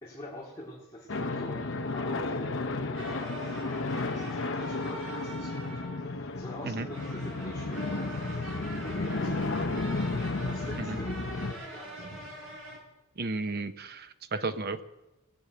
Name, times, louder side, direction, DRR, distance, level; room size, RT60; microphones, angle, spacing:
voice 1, 0.0-5.6 6.0-12.4, left 1 dB, 15° left, -5 dB, 2.3 m, -46 dB
sound 1, 1.1-11.5, left 3 dB, 60° left, 0.9 m, -33 dB
sound 2, 2.9-12.8, right 1 dB, 65° right, 5.3 m, -43 dB
voice 2, 13.2-14.8, right 3 dB, 45° right, 10 dB, 0.7 m, -33 dB
18.5 x 7.1 x 8.1 m, 0.99 s
head